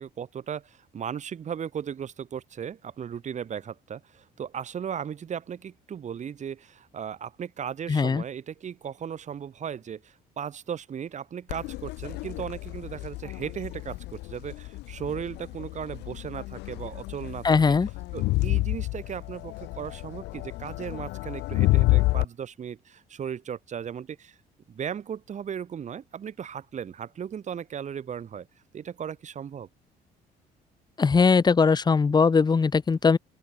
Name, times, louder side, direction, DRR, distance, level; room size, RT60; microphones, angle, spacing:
voice 1, 0.0-17.8 18.1-24.4 24.7-28.5 28.7-29.7, right 8 dB, 45° right, 5.2 m, -36 dB
voice 2, 7.9-8.2 17.4-17.9 31.0-33.2, left 5 dB, 25° left, 1.6 m, -20 dB
Crowd, 11.5-22.2, left 20 dB, 90° left, 8.0 m, -29 dB
open air
cardioid pair, 110°, 17 cm